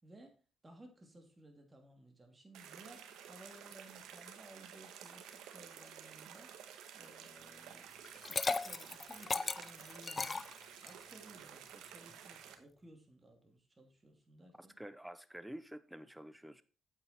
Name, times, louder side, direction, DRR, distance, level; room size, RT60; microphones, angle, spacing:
voice 1, 0.0-6.5 7.0-10.5 10.8-14.7, right 1 dB, 20° right, 3 dB, 2.8 m, -58 dB
sound 1, 2.5-12.5, right 9 dB, 90° right, 1.3 m, -53 dB
Liquid, 8.0-11.1, left 4 dB, 30° left, 0.5 m, -37 dB
voice 2, 14.6-16.6, right 1 dB, 5° right, 13 dB, 0.8 m, -49 dB
8.7 x 7.3 x 4.3 m, 0.34 s
cardioid pair, 90°, 0 cm